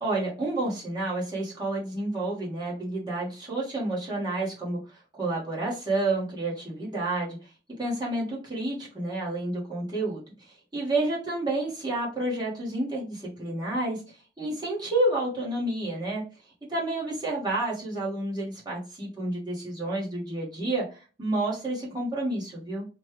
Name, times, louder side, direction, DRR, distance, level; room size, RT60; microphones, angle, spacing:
voice 1, 0.0-4.8 5.2-7.4 7.8-10.2 10.7-14.0 14.4-16.2 16.7-20.8 21.2-22.9, right 2 dB, 25° right, -5 dB, 1.3 m, -29 dB
3.2 x 2.2 x 3.0 m, 0.34 s
head